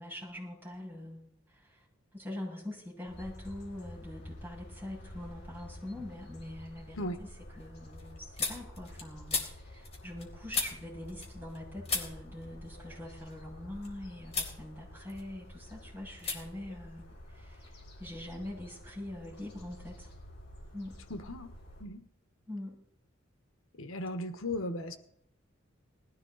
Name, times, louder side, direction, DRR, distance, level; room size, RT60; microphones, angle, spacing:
voice 1, 0.0-1.9 2.1-20.1 20.7-21.0 22.5-22.8, left 1 dB, 10° right, -5 dB, 7.1 m, -44 dB
sound 1, 3.1-21.8, left 1 dB, 55° left, 5.4 m, -50 dB
sound 2, 5.6-6.2 6.5-11.6 11.8-13.9 14.3-14.6 14.9-15.7 16.2-16.4 16.6-17.7, left 5 dB, 30° left, 3.7 m, -38 dB
voice 2, 21.1-21.5 21.8-22.0 23.8-25.0, left 1 dB, 85° left, 8 dB, 1.3 m, -36 dB
20.0 x 15.0 x 4.1 m, 0.70 s
head